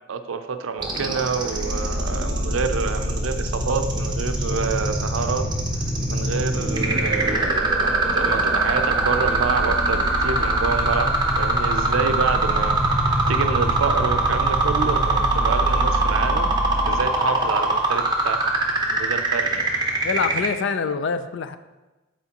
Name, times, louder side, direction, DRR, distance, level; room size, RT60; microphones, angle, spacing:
voice 1, 0.1-5.4 6.1-12.8 13.3-16.5 16.8-18.4 18.9-19.7, right 5 dB, 75° right, 8 dB, 0.5 m, -27 dB
sound 1, 0.8-20.5, right 3 dB, 20° right, 0.7 m, -23 dB
sound 2, 1.5-17.0, equal, 25° left, 1.7 m, -27 dB
voice 2, 20.0-21.6, left 5 dB, 60° left, 11 dB, 0.4 m, -25 dB
8.2 x 4.4 x 2.9 m, 1.1 s
head